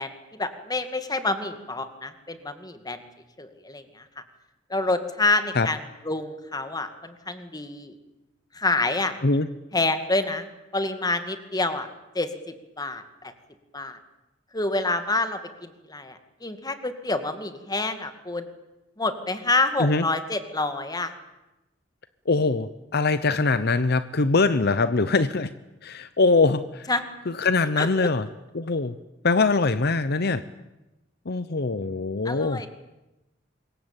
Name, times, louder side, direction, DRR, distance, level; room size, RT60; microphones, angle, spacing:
voice 1, 0.0-3.0 3.4-4.0 4.7-5.8 6.0-7.9 8.5-9.2 9.7-10.5 10.7-11.9 12.1-13.3 13.7-14.0 14.5-18.5 19.0-21.1 26.9-27.0 27.8-28.1 32.3-32.7, left 2 dB, 20° left, 9 dB, 2.2 m, -27 dB
voice 2, 22.3-25.5 25.8-26.9 27.3-28.3 28.5-28.9 29.2-30.4 31.3-32.6, left 3 dB, 55° left, 13 dB, 0.9 m, -22 dB
26.0 x 22.5 x 9.0 m, 1.0 s
head